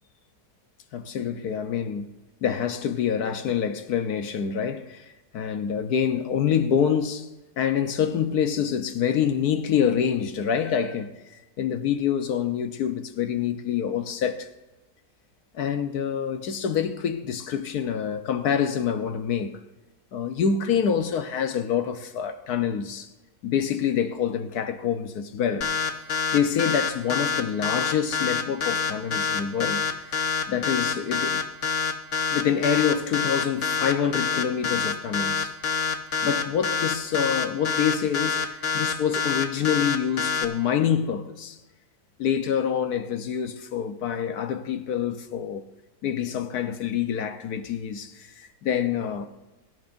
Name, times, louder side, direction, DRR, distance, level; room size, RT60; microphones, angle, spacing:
voice 1, 0.9-2.1 2.4-7.3 7.6-14.5 15.5-19.6 20.1-23.1 23.4-26.0 26.3-31.4 32.3-35.5 36.2-41.6 42.2-45.6 46.0-49.3, left 8 dB, 80° left, 1.4 m, -26 dB
sound 1, 25.6-40.4, left 5 dB, 55° left, 1.4 m, -26 dB
23.5 x 14.0 x 2.6 m
omnidirectional pair, 1.6 m